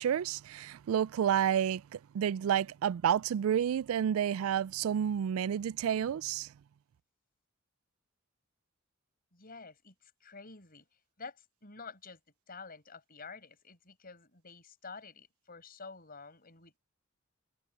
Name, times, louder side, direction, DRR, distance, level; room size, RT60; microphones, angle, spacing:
voice 1, 0.0-6.5, right 9 dB, 85° right, 0.3 m, -30 dB
voice 2, 9.3-10.8 11.2-12.2 12.5-16.8, left 4 dB, 45° left, 6.1 m, -49 dB
head